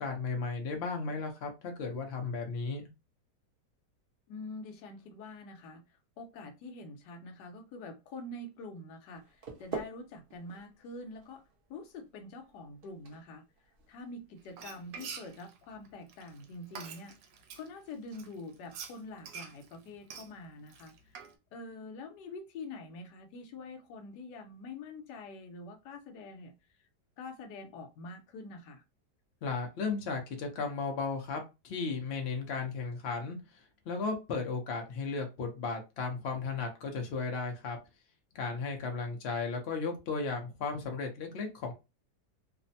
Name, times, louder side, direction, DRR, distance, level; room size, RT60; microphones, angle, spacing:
voice 1, 0.0-2.9 29.4-33.4 33.9-37.8 38.3-41.7, left 4 dB, 55° left, 0.7 m, -35 dB
voice 2, 4.3-11.4 11.7-13.5 13.9-17.2 17.5-21.2 21.5-26.5 27.2-28.8, left 2 dB, 75° left, 1.2 m, -46 dB
sound 1, 9.1-15.0, right 5 dB, 70° right, 0.5 m, -47 dB
Frying (food), 14.4-17.7 18.1-21.3, right 6 dB, 90° right, 1.3 m, -46 dB
3.3 x 2.0 x 2.6 m
omnidirectional pair, 1.9 m